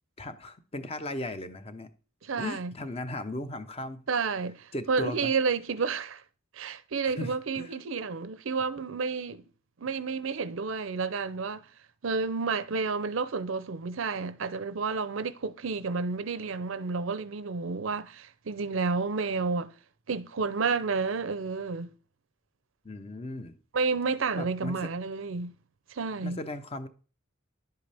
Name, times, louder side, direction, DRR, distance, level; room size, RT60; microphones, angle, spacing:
voice 1, 0.2-1.9 2.4-4.0 4.7-5.3 7.0-7.7 22.8-23.6 24.4-24.9 26.2-26.9, left 1 dB, 30° left, 0.8 m, -37 dB
voice 2, 2.2-2.7 4.1-6.2 6.5-9.4 9.8-11.6 12.0-19.7 20.1-21.9 23.7-25.5 25.9-26.4, right 4 dB, 65° right, 0.6 m, -30 dB
10.5 x 8.0 x 3.4 m
head